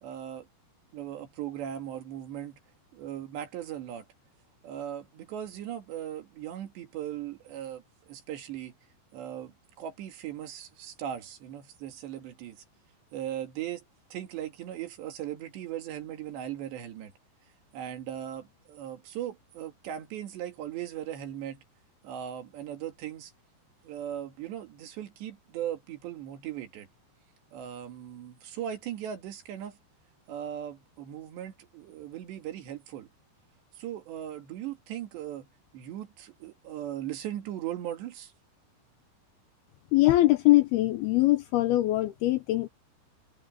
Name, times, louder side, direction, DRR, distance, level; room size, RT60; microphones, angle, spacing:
voice 1, 0.0-0.5 0.9-2.6 2.9-4.1 4.6-8.7 9.1-12.6 13.1-17.1 17.7-21.6 22.0-23.3 23.8-26.9 27.5-29.8 30.3-33.1 33.8-35.5 35.7-38.3, right 11 dB, 70° right, 4.3 m, -38 dB
voice 2, 39.9-42.7, left 17 dB, 80° left, 2.4 m, -22 dB
omnidirectional pair, 5.2 m